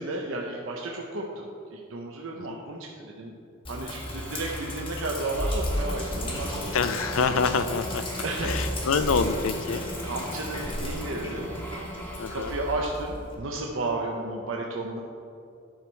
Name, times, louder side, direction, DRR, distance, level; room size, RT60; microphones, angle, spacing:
voice 1, 0.0-3.3 3.7-6.7 8.2-8.6 10.0-11.5 12.3-15.0, right 2 dB, 70° right, 0 dB, 0.7 m, -33 dB
Sink (filling or washing), 3.6-13.3, left 1 dB, 25° left, 1.2 m, -34 dB
sound 1, 3.9-12.7, equal, 10° left, 1.3 m, -44 dB
sound 2, 5.7-12.0, right 1 dB, 85° right, 1.8 m, -39 dB
voice 2, 6.7-8.1 8.4-9.9 12.2-12.5, left 5 dB, 80° left, 11 dB, 0.5 m, -26 dB
10.0 x 6.2 x 4.5 m, 2.5 s
head